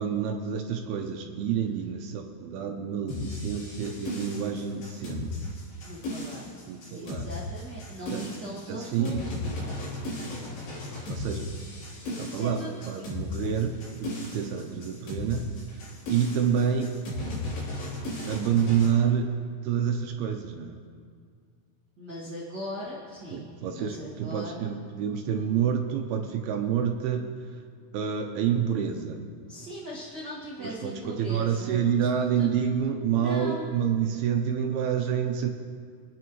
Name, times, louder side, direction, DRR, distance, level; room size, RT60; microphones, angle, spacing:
voice 1, 0.0-5.6 6.7-7.3 8.1-8.3 8.7-9.2 11.1-11.5 12.2-15.8 16.1-17.0 18.3-19.3 19.6-20.8 23.3-27.3 27.9-29.2 30.6-35.5, right 8 dB, 80° right, 4 dB, 2.5 m, -28 dB
sound 1, 3.1-18.9, left 2 dB, 70° left, 5.3 m, -36 dB
voice 2, 5.8-6.5 6.9-9.8 12.1-12.9 22.0-23.4 23.7-24.7 29.5-32.1 32.3-32.5 33.1-33.7, left 1 dB, 40° right, -6 dB, 1.4 m, -39 dB
24.5 x 9.3 x 3.1 m, 2.1 s
omnidirectional pair, 4.8 m